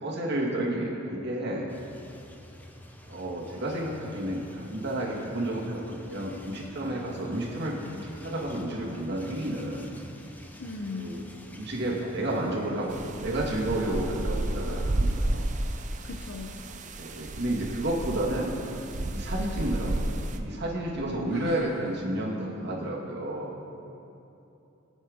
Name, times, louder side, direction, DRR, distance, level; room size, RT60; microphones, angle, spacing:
voice 1, 0.0-1.7 3.1-9.9 10.9-11.2 11.5-15.5 17.0-18.5 19.0-20.0 20.3-23.5, right 1 dB, 55° right, -3 dB, 2.0 m, -31 dB
sound 1, 1.7-15.5, left 1 dB, 10° left, 0.6 m, -48 dB
voice 2, 10.6-11.1 16.0-16.6 21.3-21.9, left 3 dB, 75° left, 1 dB, 0.7 m, -38 dB
sound 2, 12.9-20.4, right 1 dB, 40° right, 0.6 m, -32 dB
19.5 x 7.2 x 3.6 m, 2.8 s
head